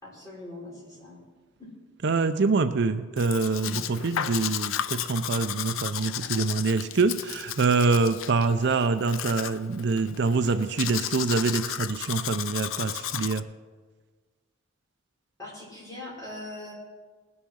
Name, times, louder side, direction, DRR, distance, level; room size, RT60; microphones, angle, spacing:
voice 1, 0.0-1.2 1.6-1.7 3.6-3.8 15.4-16.7, left 2 dB, 15° left, -7 dB, 5.0 m, -41 dB
voice 2, 2.0-13.4, right 4 dB, 55° right, 10 dB, 0.5 m, -25 dB
Domestic sounds home sounds, 3.2-13.4, left 10 dB, 70° left, 0.5 m, -34 dB
20.0 x 7.1 x 6.4 m, 1.4 s
head